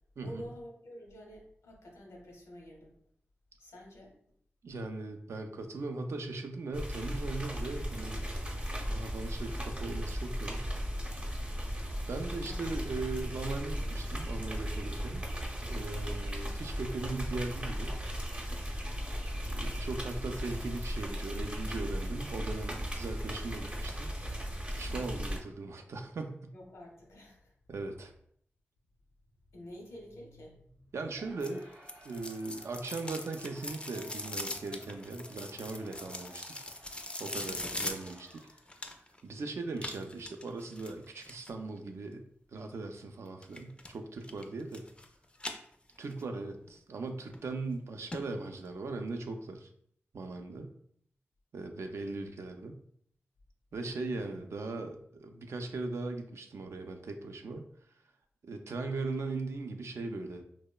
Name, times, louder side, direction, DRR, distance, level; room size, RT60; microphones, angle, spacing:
voice 1, 0.2-2.9 3.6-4.2 12.4-12.6 24.9-25.2 26.5-27.5 29.5-30.9 37.4-37.7 54.1-54.4, equal, 85° left, -1 dB, 0.7 m, -49 dB
voice 2, 4.6-8.3 8.7-10.6 12.1-15.2 15.7-18.0 19.5-24.1 24.8-26.5 27.7-28.1 30.9-31.6 32.0-36.6 37.2-38.4 39.2-42.2 42.5-44.9 46.0-49.7 50.1-50.7 51.5-52.8 53.7-57.7 58.5-60.4, right 3 dB, 70° right, 5 dB, 0.3 m, -39 dB
sound 1, 6.7-25.4, equal, 25° right, 0.6 m, -36 dB
Crowd, 31.1-38.8, right 1 dB, 90° right, 0.7 m, -57 dB
sound 2, 31.4-39.2 39.8-41.5 43.4-43.9 44.2-45.1 45.4-46.2 46.6-46.7 47.3-47.4 47.7-47.8 48.1-48.2 48.6-48.7, left 1 dB, 20° left, 0.3 m, -41 dB
2.9 x 2.0 x 2.2 m, 0.65 s
cardioid pair, 50°, 5 cm